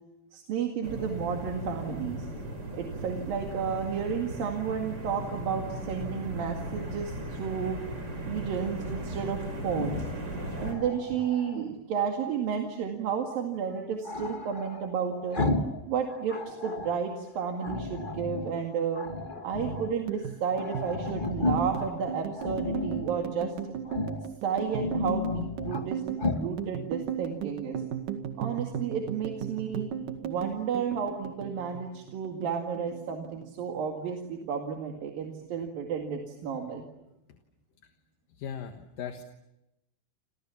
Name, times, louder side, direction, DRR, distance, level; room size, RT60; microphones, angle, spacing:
voice 1, 0.3-2.3 2.7-7.8 8.3-10.1 10.6-15.4 15.9-19.1 19.4-23.6 24.4-27.8 28.4-29.9 30.2-36.8, right 7 dB, 85° right, 2 dB, 3.9 m, -32 dB
sound 1, 0.8-10.7, right 1 dB, 30° right, 5.3 m, -37 dB
Growling, 9.7-11.7 14.0-15.8 16.1-17.0 17.6-18.5 18.9-19.9 20.2-20.3 20.5-21.9 22.3-23.1 23.8-24.3 24.6-25.8 26.2-26.5, left 2 dB, 35° left, 0.7 m, -33 dB
sound 2, 19.9-32.5 32.7-33.8 34.1-34.4 34.7-35.4, right 9 dB, 70° right, 3.6 m, -36 dB
voice 2, 38.4-39.2, left 8 dB, 75° left, 5 dB, 3.1 m, -38 dB
29.0 x 28.5 x 7.2 m, 0.93 s
omnidirectional pair, 3.9 m